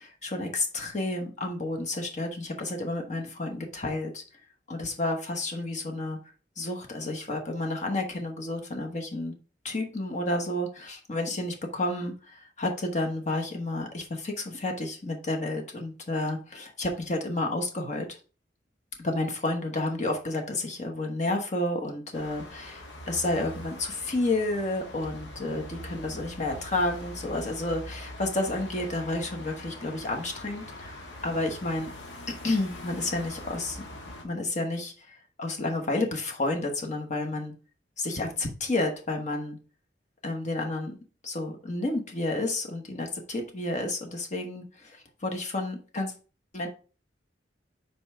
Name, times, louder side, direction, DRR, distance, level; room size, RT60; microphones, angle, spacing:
voice 1, 0.0-4.2 4.7-6.2 6.6-9.3 9.6-18.1 19.0-31.9 32.3-33.8 34.2-37.5 38.0-39.6 40.2-41.0 41.2-46.1 46.5-46.7, left 2 dB, 40° left, 2 dB, 1.1 m, -31 dB
sound 1, 22.1-34.2, left 1 dB, 80° left, 1.7 m, -43 dB
5.4 x 4.4 x 5.5 m, 0.37 s
head